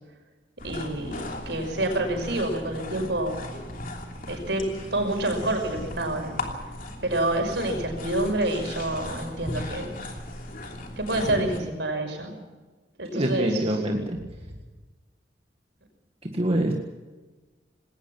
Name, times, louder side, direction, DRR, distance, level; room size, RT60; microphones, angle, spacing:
sound 1, 0.6-11.6, left 1 dB, 50° left, 3.1 m, -37 dB
voice 1, 0.6-3.3 4.3-4.6 4.9-6.3 7.0-10.0 11.0-12.4 13.0-13.8, right 1 dB, 70° right, 4 dB, 5.7 m, -28 dB
voice 2, 13.1-14.2 16.3-16.7, right 1 dB, 35° right, 2 dB, 1.8 m, -25 dB
20.0 x 18.5 x 7.2 m, 1.2 s
head